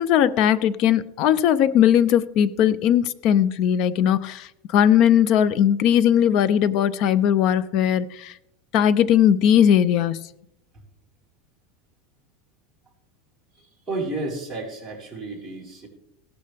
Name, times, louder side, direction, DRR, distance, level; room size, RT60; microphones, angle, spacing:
voice 1, 0.0-8.4 8.7-10.3, left 9 dB, 45° left, 18 dB, 0.4 m, -19 dB
voice 2, 13.5-15.9, right 2 dB, 5° right, -7 dB, 4.6 m, -32 dB
17.0 x 12.0 x 3.4 m, 0.80 s
supercardioid pair, 160°, 0 cm